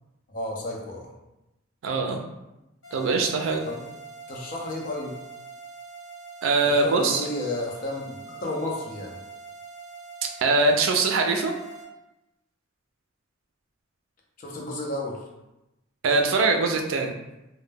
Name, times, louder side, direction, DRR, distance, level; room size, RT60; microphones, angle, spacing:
voice 1, 0.3-1.1 3.7-3.9 4.3-5.2 6.6-9.2 14.4-15.2, left 2 dB, 45° left, -1 dB, 0.5 m, -32 dB
voice 2, 1.8-2.2 2.9-3.6 6.4-7.2 10.4-11.5 16.0-17.1, right 3 dB, 80° right, 4 dB, 0.4 m, -22 dB
sound 1, 2.8-11.8, right 4 dB, 75° left, 1.0 m, -43 dB
2.1 x 2.1 x 3.2 m, 0.95 s
head